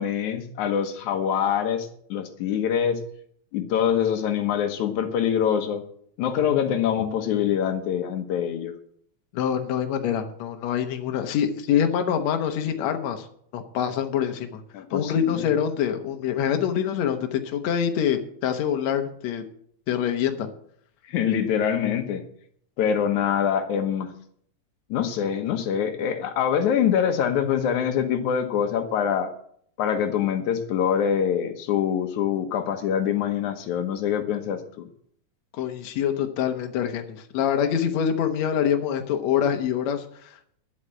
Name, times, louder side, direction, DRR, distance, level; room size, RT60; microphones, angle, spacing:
voice 1, 0.0-3.0 3.5-5.8 6.2-8.7 14.7-15.5 21.1-22.2 22.8-24.1 24.9-29.3 29.8-34.9, left 8 dB, 90° left, 6 dB, 2.6 m, -24 dB
voice 2, 9.3-13.3 13.5-14.6 14.9-19.4 19.9-20.5 35.5-40.6, left 8 dB, 70° left, 5 dB, 2.3 m, -25 dB
11.5 x 7.9 x 7.6 m, 0.63 s
omnidirectional pair, 3.3 m